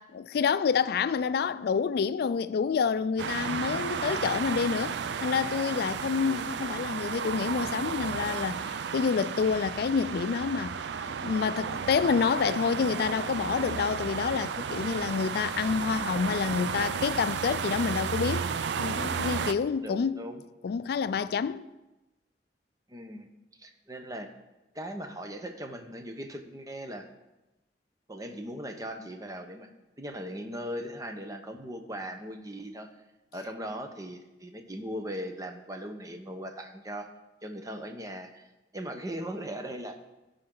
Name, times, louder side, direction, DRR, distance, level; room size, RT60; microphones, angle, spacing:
voice 1, 0.0-5.0 5.2-10.8 11.2-18.5 18.8-20.2 20.6-21.7, left 6 dB, 60° left, 0.3 m, -28 dB
sound 1, 3.2-19.5, right 6 dB, 80° right, 0.4 m, -33 dB
voice 2, 19.8-20.4 22.9-23.3 23.6-24.3 24.7-27.1 28.1-29.7 30.0-32.9 33.3-37.1 37.4-38.5 38.7-40.0, equal, 20° right, 0.8 m, -39 dB
15.5 x 5.2 x 3.8 m
head